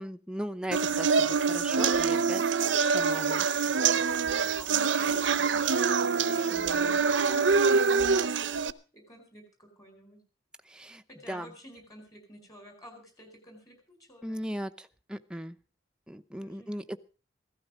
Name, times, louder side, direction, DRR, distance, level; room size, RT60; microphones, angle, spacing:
voice 1, 0.0-3.5 6.5-7.0 10.7-11.5 14.2-15.6 16.1-17.0, equal, 5° right, 7 dB, 0.7 m, -38 dB
sound 1, 0.7-8.7, right 5 dB, 85° right, 0.7 m, -25 dB
voice 2, 4.3-8.6 8.9-10.2 11.1-14.6 16.4-16.8, equal, 20° left, 5 dB, 4.5 m, -51 dB
16.0 x 13.5 x 5.0 m, 0.35 s
head